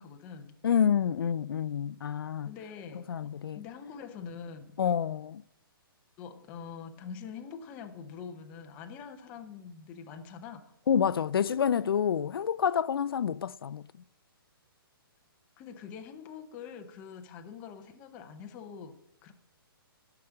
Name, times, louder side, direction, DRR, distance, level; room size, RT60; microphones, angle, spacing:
voice 1, 0.0-0.6 2.4-4.8 6.2-10.7 15.6-19.3, left 6 dB, 10° left, 0.5 m, -45 dB
voice 2, 0.6-2.5 2.9-3.6 4.8-5.4 10.9-13.9, left 8 dB, 70° left, 0.4 m, -28 dB
12.0 x 5.9 x 8.8 m
hypercardioid pair, 175°, 13 cm